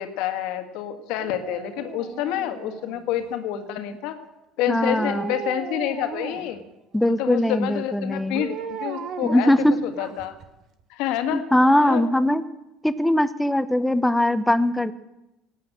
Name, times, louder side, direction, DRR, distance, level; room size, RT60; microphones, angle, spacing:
voice 1, 0.0-4.2 4.6-6.6 7.2-9.5 9.8-10.4 10.9-11.4 11.8-12.0, left 11 dB, 65° left, 8 dB, 1.8 m, -28 dB
Dog, 1.2-3.2 4.9-6.6 8.3-10.4 10.8-10.9, right 8 dB, 50° right, 1.4 m, -36 dB
voice 2, 4.7-5.3 6.9-8.4 9.2-9.8 11.3-12.4 12.8-14.9, left 1 dB, 5° left, 13 dB, 1.0 m, -21 dB
18.0 x 8.4 x 7.8 m, 0.95 s
hypercardioid pair, 70°, 0 cm